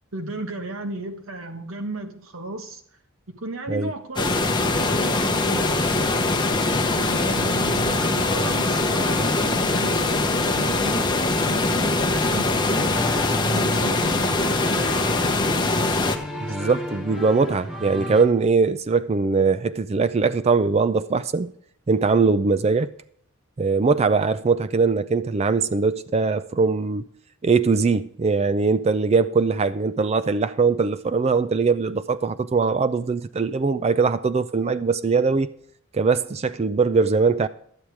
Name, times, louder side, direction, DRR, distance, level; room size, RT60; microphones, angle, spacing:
voice 1, 0.1-2.8 3.3-6.2 7.0-13.0 13.5-15.0 16.4-16.7, right 2 dB, 70° right, 1.4 m, -35 dB
sound 1, 4.2-16.2, left 2 dB, 20° left, 0.8 m, -22 dB
sound 2, 12.9-18.2, left 1 dB, 5° right, 1.2 m, -33 dB
voice 2, 16.4-21.5 21.9-22.9 23.6-27.0 27.4-35.5 35.9-37.5, right 4 dB, 30° right, 0.3 m, -21 dB
11.5 x 8.8 x 4.7 m
head